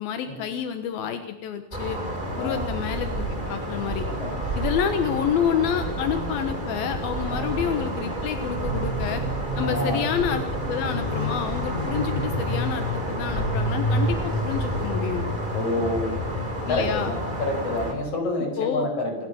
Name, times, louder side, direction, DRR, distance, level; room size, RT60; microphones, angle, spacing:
voice 1, 0.0-2.0 2.4-4.1 4.6-9.2 9.6-15.2 16.7-17.1 18.4-18.9, left 8 dB, 85° left, 8 dB, 3.1 m, -28 dB
sound 1, 1.7-17.9, equal, 10° right, 4.6 m, -28 dB
voice 2, 4.0-4.6 7.3-7.5 9.6-10.0 15.5-16.2 16.7-19.3, left 2 dB, 40° left, 3 dB, 6.5 m, -28 dB
28.0 x 15.5 x 7.1 m, 0.85 s
omnidirectional pair, 4.1 m